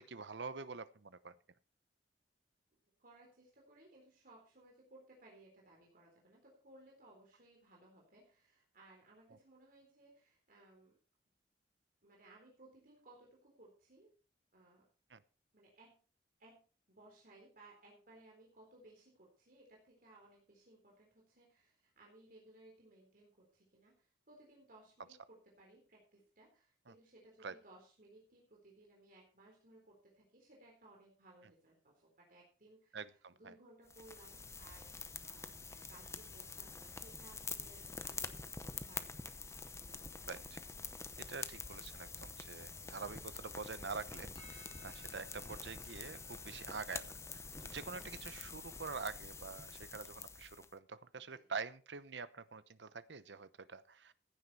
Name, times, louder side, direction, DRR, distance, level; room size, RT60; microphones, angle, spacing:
voice 1, 0.0-1.3 15.1-15.2 26.9-27.0 27.4-27.5 32.9-33.5 40.3-40.6 41.2-54.1, right 4 dB, 85° right, 14 dB, 0.9 m, -46 dB
voice 2, 3.0-11.0 12.0-14.1 14.5-14.9 15.5-16.0 16.4-16.6 16.9-34.9 35.2-39.2 51.3-51.5, right 2 dB, 55° right, -2 dB, 3.9 m, -62 dB
sound 1, 33.9-50.7, left 4 dB, 15° left, 0.8 m, -47 dB
Percussion, 44.3-49.0, left 2 dB, 30° left, 7.3 m, -64 dB
15.5 x 9.7 x 4.2 m, 0.37 s
head